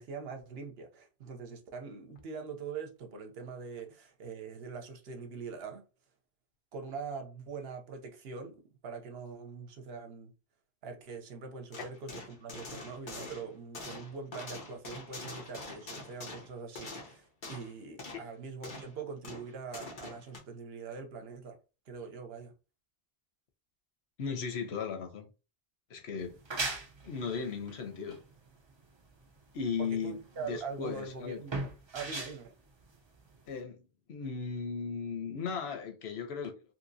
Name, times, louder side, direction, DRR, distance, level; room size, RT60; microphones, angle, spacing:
voice 1, 0.0-5.8 6.7-10.3 10.8-21.6 21.9-22.5 29.8-32.5, right 5 dB, 75° right, 0.9 m, -43 dB
sound 1, 11.7-17.7 18.0-18.3 18.6-19.0 19.2-20.4, left 2 dB, 55° left, 1.0 m, -45 dB
voice 2, 24.2-25.3 25.9-26.4 27.0-28.2 29.5-31.4 33.5-33.8 34.1-36.5, left 6 dB, 85° left, 1.0 m, -36 dB
sound 2, 26.2-33.6, right 3 dB, 35° right, 0.5 m, -40 dB
2.9 x 2.7 x 2.6 m
omnidirectional pair, 1.0 m